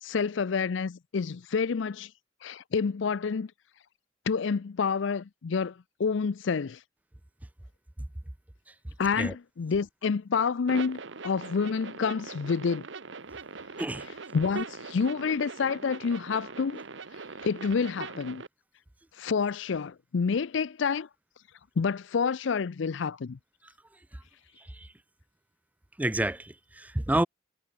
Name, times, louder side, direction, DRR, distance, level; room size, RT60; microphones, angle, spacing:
voice 1, 0.0-2.1 2.4-3.5 4.3-6.8 9.0-12.9 14.3-16.8 17.4-18.4 19.2-21.1 21.8-23.4, left 5 dB, 70° left, 0.5 m, -28 dB
sound 1, 10.7-18.5, right 4 dB, 70° right, 1.0 m, -41 dB
voice 2, 24.6-24.9 26.0-27.3, right 1 dB, 10° right, 0.4 m, -29 dB
head